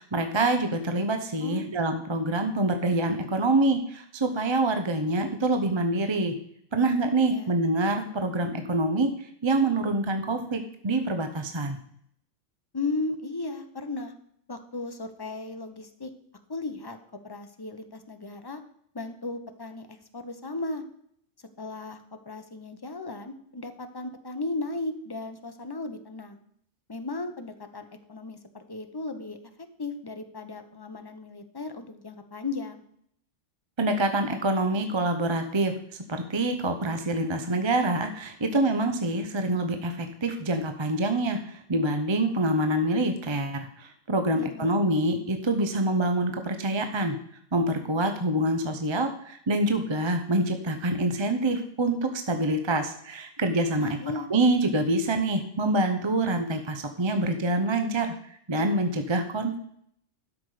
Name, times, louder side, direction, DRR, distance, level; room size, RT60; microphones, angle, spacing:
voice 1, 0.0-6.3 6.7-11.8 33.8-35.7 36.1-47.2 47.5-58.1 58.5-59.6, right 2 dB, 25° right, 6 dB, 0.8 m, -26 dB
voice 2, 1.4-1.7 7.3-7.6 12.7-14.1 14.5-16.1 16.5-18.6 18.9-20.8 21.6-26.4 26.9-29.4 29.8-32.8 44.3-44.8 53.8-54.3, left 3 dB, 20° left, 8 dB, 0.8 m, -36 dB
12.0 x 6.2 x 4.9 m, 0.67 s
omnidirectional pair, 1.3 m